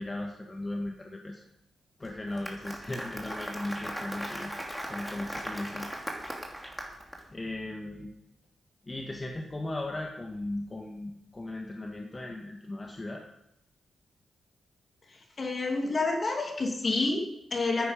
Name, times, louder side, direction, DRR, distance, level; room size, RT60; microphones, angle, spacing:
voice 1, 0.0-1.4 2.0-4.5 4.9-5.9 7.3-8.1 8.9-13.2, left 1 dB, 25° left, 1 dB, 1.8 m, -37 dB
Applause, 2.1-7.2, equal, ahead, 2.9 m, -38 dB
voice 2, 15.4-17.9, left 3 dB, 45° left, 2 dB, 2.9 m, -29 dB
13.5 x 9.7 x 5.3 m, 0.84 s
cardioid pair, 65°, 0 cm